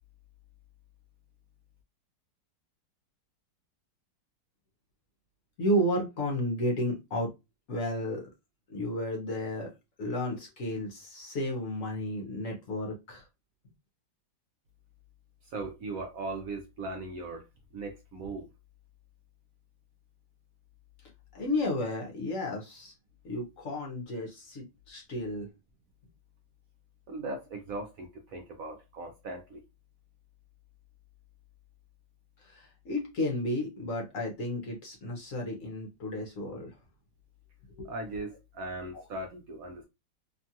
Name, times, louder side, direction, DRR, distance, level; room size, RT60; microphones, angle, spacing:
voice 1, 5.6-7.3 7.7-8.3 8.7-9.7 10.0-13.2 21.3-22.9 23.2-25.5 32.4-36.7 37.8-37.9, left 1 dB, 60° left, 1.0 m, -32 dB
voice 2, 15.5-17.4 17.7-18.5 27.1-29.6 37.8-39.8, right 2 dB, 70° right, 0.9 m, -38 dB
2.9 x 2.3 x 2.7 m
omnidirectional pair, 1.8 m